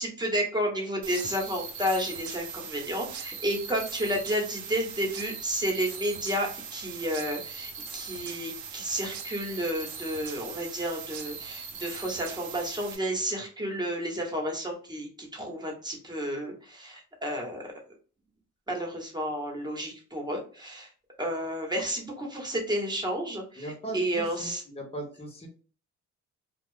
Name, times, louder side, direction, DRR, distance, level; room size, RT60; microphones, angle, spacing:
voice 1, 0.0-17.6 18.7-20.9 21.2-24.6, equal, 15° right, 1 dB, 1.2 m, -31 dB
sound 1, 1.0-13.0, right 6 dB, 75° right, 0.7 m, -40 dB
voice 2, 23.6-25.5, right 1 dB, 20° left, 0 dB, 1.1 m, -39 dB
2.5 x 2.3 x 3.6 m, 0.39 s
cardioid pair, 90°, 30 cm